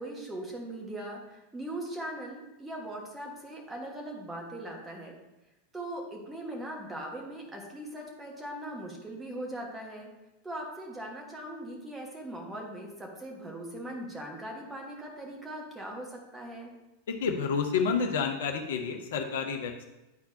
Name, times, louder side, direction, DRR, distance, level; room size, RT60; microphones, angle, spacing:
voice 1, 0.0-5.2 5.7-10.1 10.4-16.7, right 1 dB, 10° right, -1 dB, 1.4 m, -40 dB
voice 2, 17.1-19.8, left 5 dB, 60° left, 4 dB, 0.9 m, -29 dB
10.5 x 4.3 x 2.7 m, 1.0 s
figure-of-eight pair, 90°, 0 cm